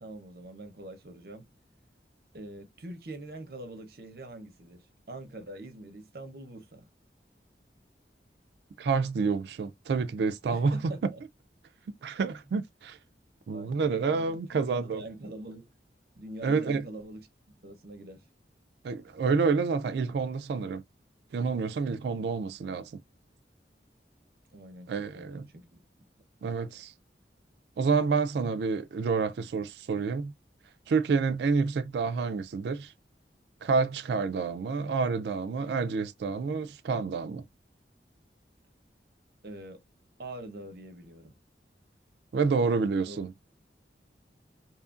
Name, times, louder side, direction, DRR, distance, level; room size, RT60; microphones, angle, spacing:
voice 1, 0.0-1.5 2.3-6.9 10.5-11.2 13.5-15.7 16.2-17.3 17.6-18.2 24.5-24.9 25.1-25.8 39.4-39.8 40.2-41.3 43.0-43.2, right 1 dB, 55° right, 0.7 m, -44 dB
voice 2, 8.8-10.8 12.0-13.0 13.5-15.0 16.4-16.8 18.8-20.8 21.3-22.9 24.9-25.4 26.4-26.9 27.8-30.3 30.9-32.9 33.6-37.4 42.3-43.4, right 5 dB, 75° right, 0.3 m, -28 dB
2.7 x 2.4 x 2.4 m
head